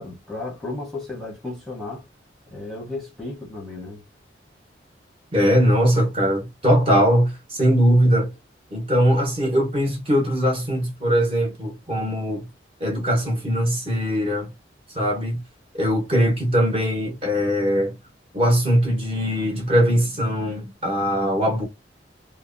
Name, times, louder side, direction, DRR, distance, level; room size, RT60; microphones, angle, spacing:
voice 1, 0.0-2.0 2.5-4.0, left 2 dB, ahead, 0.8 m, -34 dB
voice 2, 5.3-8.3 8.7-12.5 12.8-14.5 14.9-15.4 15.7-17.9 18.3-21.6, equal, 30° right, 1.0 m, -21 dB
2.7 x 2.1 x 2.5 m
head